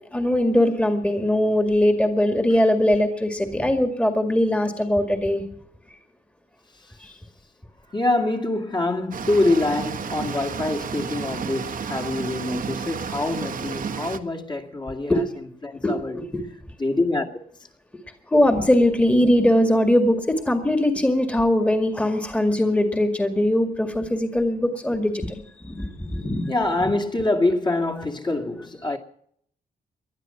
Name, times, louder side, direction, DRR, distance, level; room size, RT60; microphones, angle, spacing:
voice 1, 0.1-5.4 7.0-7.2 15.1-15.2 15.8-16.4 18.3-26.5 26.8-26.9, left 1 dB, 10° left, 2.0 m, -21 dB
voice 2, 7.9-15.2 15.6-16.2 16.8-17.3 26.5-29.0, left 2 dB, 30° left, 2.3 m, -25 dB
sound 1, 9.1-14.2, right 6 dB, 65° right, 1.4 m, -32 dB
20.0 x 12.0 x 5.8 m
cardioid pair, 120°, 16 cm